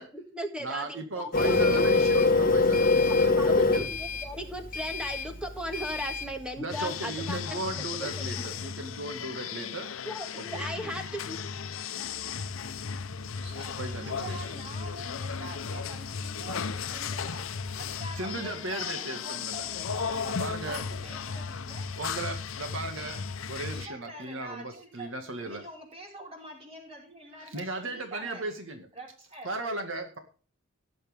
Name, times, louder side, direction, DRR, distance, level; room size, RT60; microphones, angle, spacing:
voice 1, 0.0-1.9 2.9-7.7 8.0-8.7 10.0-11.4, equal, 5° right, 5 dB, 1.7 m, -37 dB
voice 2, 0.6-3.9 6.6-9.9 10.4-10.6 13.3-14.4 17.0-17.2 18.2-19.7 20.3-20.8 22.0-25.6 27.5-28.9 29.4-30.2, right 2 dB, 70° right, 5 dB, 2.1 m, -37 dB
Printer, 1.3-6.3, left 3 dB, 45° left, 1.6 m, -24 dB
sound 1, 6.7-23.9, left 6 dB, 85° left, 0.8 m, -35 dB
voice 3, 13.4-17.5 17.8-21.9 23.7-25.1 25.4-28.5 28.9-29.5, right 1 dB, 30° right, -1 dB, 5.3 m, -45 dB
18.0 x 7.7 x 3.6 m, 0.37 s
head